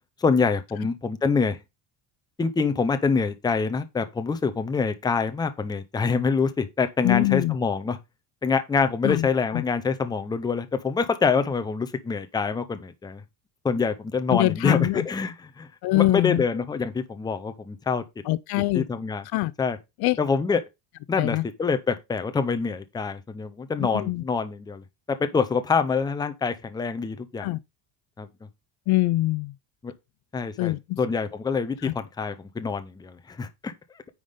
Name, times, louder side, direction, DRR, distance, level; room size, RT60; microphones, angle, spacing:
voice 1, 0.2-1.6 2.4-8.0 8.4-13.2 13.6-15.7 15.9-18.0 18.7-19.2 19.6-19.8 20.2-20.6 21.1-27.5 28.2-28.3 29.8-29.9 30.3-33.7, left 5 dB, 10° left, 0.6 m, -26 dB
voice 2, 7.0-7.6 9.0-9.3 9.5-9.6 14.3-15.1 15.8-16.4 18.3-18.9 19.3-19.5 20.0-20.2 21.2-21.5 23.8-24.2 27.4-27.6 28.9-29.5 30.6-31.0 31.8-31.9, left 19 dB, 60° left, 0.5 m, -23 dB
9.5 x 3.6 x 5.1 m
cardioid pair, 170°, 44 cm